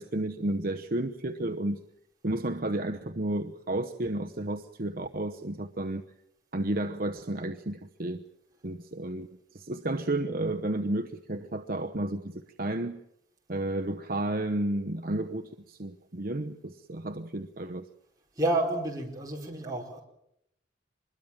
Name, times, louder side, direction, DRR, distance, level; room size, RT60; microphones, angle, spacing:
voice 1, 0.0-1.8 2.2-6.0 6.5-8.2 8.6-9.3 9.5-13.0 13.5-17.9, right 1 dB, 50° right, 7 dB, 0.9 m, -32 dB
voice 2, 18.4-20.0, right 2 dB, 20° right, -1 dB, 4.9 m, -29 dB
25.0 x 21.5 x 7.5 m, 0.77 s
head